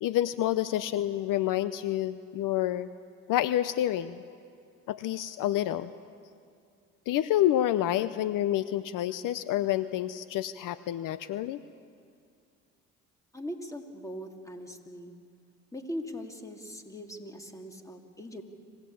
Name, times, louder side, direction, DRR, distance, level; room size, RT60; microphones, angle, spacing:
voice 1, 0.0-2.9 3.3-4.2 4.9-5.9 7.1-11.6, left 13 dB, 65° left, 14 dB, 0.7 m, -28 dB
voice 2, 13.3-15.1 15.7-18.4, equal, 10° left, 4 dB, 2.7 m, -40 dB
26.5 x 17.0 x 8.7 m, 2.3 s
supercardioid pair, 80°, 35 cm